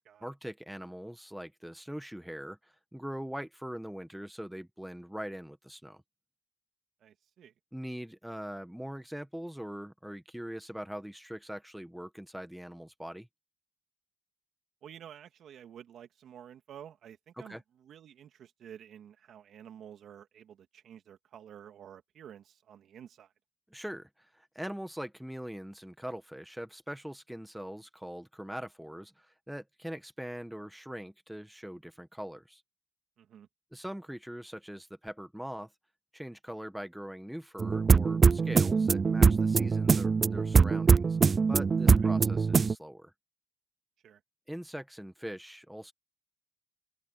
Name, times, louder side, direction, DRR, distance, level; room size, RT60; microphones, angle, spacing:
voice 1, 0.2-6.0 7.7-13.3 17.4-17.6 23.7-32.6 33.7-35.7 36.1-41.2 41.5-43.1 44.5-45.9, equal, 5° right, 1.3 m, -42 dB
voice 2, 7.0-7.5 14.8-23.3 33.2-33.5 41.9-42.1 44.0-44.2, right 9 dB, 70° right, 2.8 m, -51 dB
sound 1, 37.6-42.7, right 5 dB, 35° right, 0.4 m, -23 dB
open air
cardioid pair, 90°, 0 cm